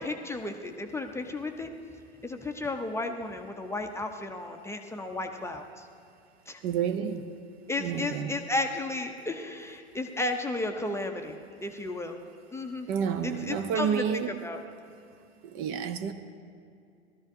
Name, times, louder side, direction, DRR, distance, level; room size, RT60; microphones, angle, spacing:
voice 1, 0.0-1.7 2.2-5.9 6.5-6.6 7.7-12.2 12.5-12.9 13.2-14.6, left 2 dB, 10° left, 4 dB, 0.6 m, -33 dB
voice 2, 6.6-7.3 7.8-8.4 12.9-14.4 15.4-16.1, right 7 dB, 40° right, 10 dB, 0.6 m, -30 dB
17.5 x 13.0 x 2.7 m, 2.5 s
figure-of-eight pair, 85°, 33 cm